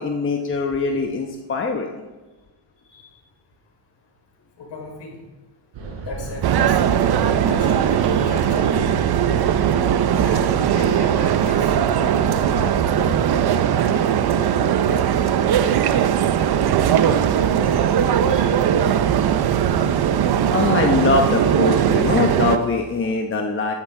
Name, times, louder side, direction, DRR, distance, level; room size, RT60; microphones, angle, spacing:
voice 1, 0.0-1.9 20.5-23.7, left 4 dB, 25° left, 2 dB, 0.9 m, -22 dB
voice 2, 4.6-5.2 6.0-6.8 7.3-8.9 10.0-11.7 12.1-13.2 17.5-17.6 18.1-20.1, left 3 dB, 65° left, -1 dB, 4.8 m, -36 dB
sound 1, 5.7-13.4, right 3 dB, 70° right, 4.0 m, -33 dB
sound 2, 6.4-22.6, right 9 dB, 55° right, 0.7 m, -19 dB
sound 3, 13.5-23.1, right 2 dB, 20° right, 2.9 m, -43 dB
13.5 x 11.5 x 3.8 m, 1.2 s
cardioid pair, 135°, 47 cm